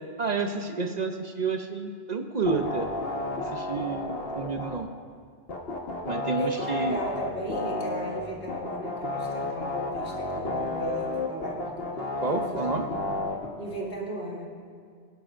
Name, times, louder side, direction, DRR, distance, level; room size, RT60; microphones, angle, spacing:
voice 1, 0.2-2.9 3.3-4.9 6.1-7.0 12.2-12.9, right 4 dB, 45° right, 5 dB, 0.8 m, -30 dB
sound 1, 2.4-4.7 5.5-8.2 8.5-13.5, left 2 dB, 60° left, 1.6 m, -32 dB
voice 2, 6.4-11.7 12.3-12.6 12.9-13.2 13.6-14.5, right 1 dB, 90° left, -3 dB, 2.6 m, -36 dB
24.0 x 10.5 x 2.6 m, 2.2 s
omnidirectional pair, 1.1 m